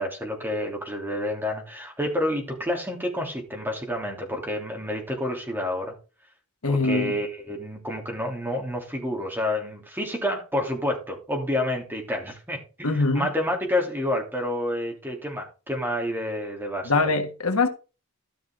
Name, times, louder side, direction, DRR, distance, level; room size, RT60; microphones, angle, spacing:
voice 1, 0.0-5.9 6.7-12.9 13.1-16.9, left 1 dB, 10° right, 2.8 m, -29 dB
voice 2, 6.6-7.1 12.8-13.3 16.8-17.7, left 3 dB, 70° left, 1.5 m, -23 dB
13.5 x 6.3 x 3.9 m
head